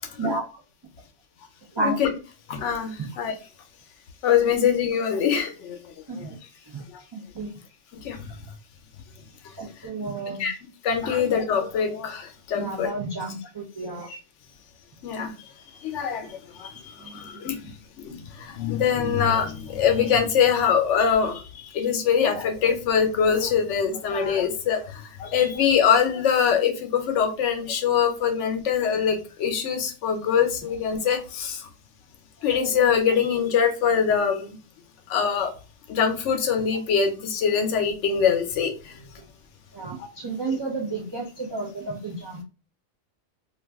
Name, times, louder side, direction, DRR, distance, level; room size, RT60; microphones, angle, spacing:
voice 1, 0.2-0.6 1.7-2.0 3.0-3.1 6.1-6.4 6.7-6.8 7.1-7.5 9.6-10.5 12.5-14.1 17.0-17.4 39.7-42.4, right 3 dB, 45° right, -1 dB, 0.3 m, -31 dB
voice 2, 2.5-3.3 4.2-5.8 6.2-6.3 8.0-8.2 10.4-10.5 10.8-12.9 14.0-14.2 15.0-15.3 15.8-17.6 18.0-31.7 32.4-34.6 35.1-35.5 35.9-39.0 40.0-40.1 40.5-40.6, left 7 dB, 80° left, 6 dB, 0.9 m, -23 dB
2.5 x 2.3 x 3.4 m, 0.33 s
omnidirectional pair, 1.2 m